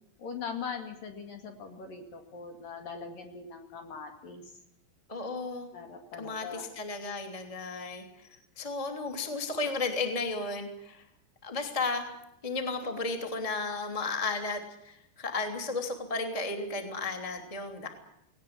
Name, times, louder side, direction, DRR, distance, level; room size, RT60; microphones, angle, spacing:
voice 1, 0.2-4.4 5.7-6.7, left 5 dB, 55° left, 5 dB, 3.4 m, -41 dB
voice 2, 5.1-5.7 6.2-8.3 8.6-11.0 11.4-12.1 12.4-17.9, left 3 dB, 10° left, 5 dB, 2.0 m, -34 dB
19.0 x 18.5 x 9.7 m, 0.81 s
omnidirectional pair, 5.2 m